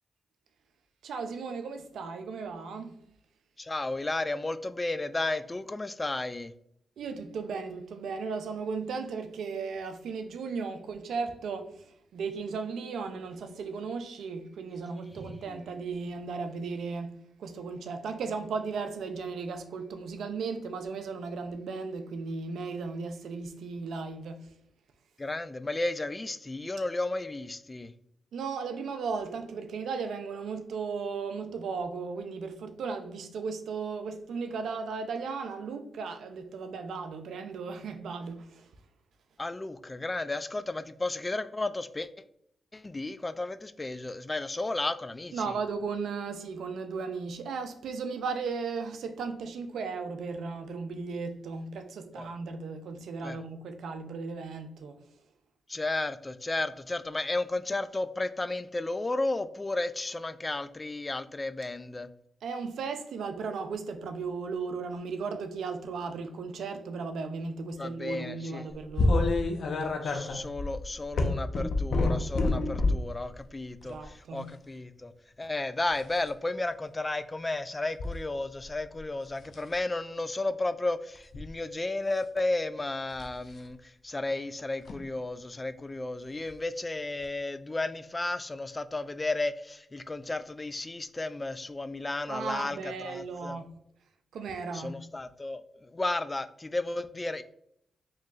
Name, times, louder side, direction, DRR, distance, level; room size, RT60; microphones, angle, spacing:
voice 1, 1.0-2.9 7.0-24.5 28.3-38.7 45.3-55.0 62.4-69.3 73.8-74.5 92.3-93.7 94.3-95.0, right 4 dB, 80° right, 0.4 m, -36 dB
voice 2, 3.6-6.5 15.5-15.6 25.2-27.9 39.4-42.1 42.7-45.6 52.2-52.3 53.2-53.4 55.7-62.1 67.8-68.7 70.0-75.1 75.4-93.6 94.7-97.4, left 2 dB, 30° left, 0.3 m, -33 dB
sound 1, 69.0-73.1 73.8-74.1 75.9-76.3 78.0-78.1 78.6-79.0 79.4-79.7 81.1-81.5 83.1-83.3 84.8-85.0 86.5-86.6 87.2-87.3, left 2 dB, 70° left, 0.6 m, -28 dB
4.3 x 3.1 x 2.4 m
supercardioid pair, 50°, 0 cm